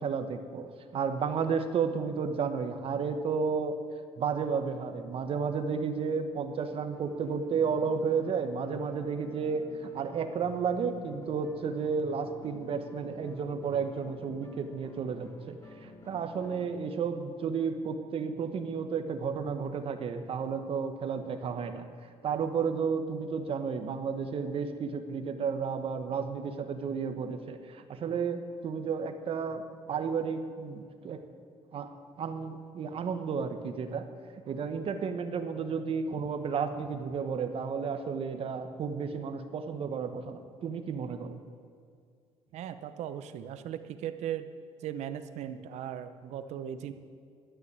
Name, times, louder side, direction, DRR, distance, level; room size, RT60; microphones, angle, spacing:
voice 1, 0.0-3.7 4.2-21.9 22.2-29.6 29.9-31.2 31.7-31.9 32.2-34.0 34.5-41.4, right 6 dB, 55° right, 8 dB, 1.0 m, -32 dB
sound 1, 6.9-16.7, left 2 dB, 25° left, 1.3 m, -51 dB
voice 2, 42.5-44.5 44.8-46.9, right 10 dB, 75° right, 11 dB, 0.7 m, -38 dB
12.0 x 6.4 x 9.5 m, 2.3 s
cardioid pair, 100°, 12 cm